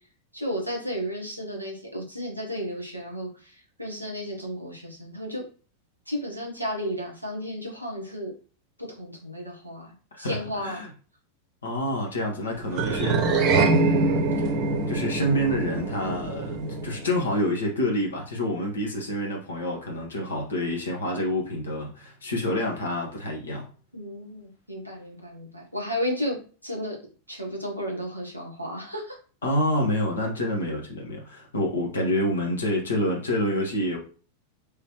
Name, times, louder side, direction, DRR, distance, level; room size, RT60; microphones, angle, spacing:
voice 1, 0.3-5.4 6.1-8.3 9.0-10.8 23.9-26.4 26.6-27.0 27.3-29.2, equal, 90° left, -2 dB, 1.2 m, -33 dB
voice 2, 10.2-10.9 11.6-13.2 13.7-14.5 14.9-23.7 29.4-34.0, left 1 dB, 70° left, 1 dB, 1.2 m, -27 dB
sound 1, 12.7-17.3, right 3 dB, 35° right, 0.7 m, -24 dB
3.4 x 3.1 x 3.1 m, 0.38 s
figure-of-eight pair, 90°, 0 cm